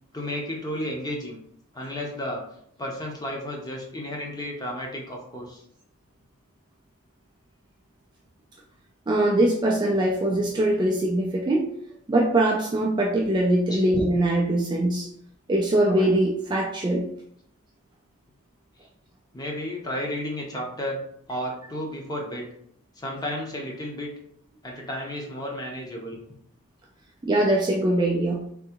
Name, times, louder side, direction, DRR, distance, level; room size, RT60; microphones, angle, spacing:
voice 1, 0.1-1.4 1.7-2.4 2.8-5.6 13.7-13.8 19.3-21.0 21.3-22.5 23.0-24.1 24.6-26.2, left 1 dB, 20° left, 0 dB, 0.6 m, -32 dB
voice 2, 9.1-11.7 12.1-15.1 15.5-17.1 27.2-28.4, right 1 dB, 20° right, -1 dB, 0.3 m, -22 dB
3.5 x 2.6 x 2.9 m, 0.67 s
head